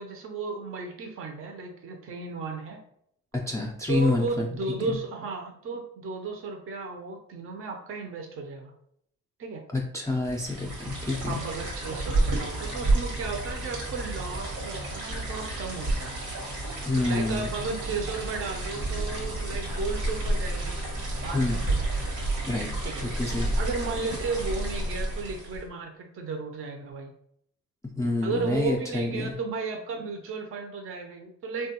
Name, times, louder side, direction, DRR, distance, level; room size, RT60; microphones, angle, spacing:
voice 1, 0.0-2.8 3.9-8.7 9.4-9.6 11.3-16.1 17.1-20.8 21.2-21.8 22.8-23.0 23.6-27.1 28.2-31.7, right 4 dB, 45° right, 3 dB, 0.5 m, -34 dB
voice 2, 3.5-4.5 9.7-11.4 16.9-17.5 21.3-21.7 22.5-22.7 23.0-23.5 28.0-29.3, left 2 dB, 10° left, -1 dB, 0.4 m, -27 dB
sound 1, 10.3-25.7, right 2 dB, 85° right, 1.1 m, -30 dB
3.1 x 2.2 x 2.8 m, 0.70 s
cardioid pair, 90°, 30 cm